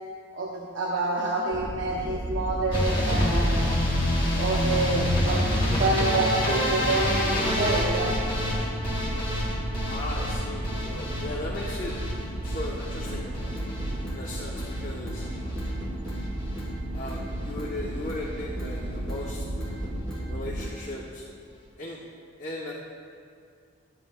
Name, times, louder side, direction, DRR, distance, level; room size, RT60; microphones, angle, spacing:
voice 1, 0.4-3.8 4.4-8.2, right 2 dB, 70° right, -3 dB, 0.7 m, -28 dB
sound 1, 1.5-20.7, right 1 dB, 25° right, 0.5 m, -34 dB
sound 2, 2.7-14.8 15.1-15.7 16.0-16.6 16.9-17.2 17.5-17.6 17.8-17.9, left 1 dB, 25° left, 1.6 m, -27 dB
voice 2, 9.9-11.9 12.4-13.5 14.1-15.6 16.9-19.5 19.8-19.9 20.3-21.2 21.8-22.0 22.4-22.7, left 1 dB, 45° left, -4 dB, 0.8 m, -37 dB
sound 3, 13.0-13.2 13.5-14.2 14.5-14.7 15.1-15.2 15.6-16.2 16.6-16.8 17.1-17.2 17.6-18.3 18.6-18.8 19.1-19.3 19.6-20.3 20.6-20.8, equal, 5° left, 1.5 m, -41 dB
12.0 x 7.8 x 2.2 m, 2.3 s
head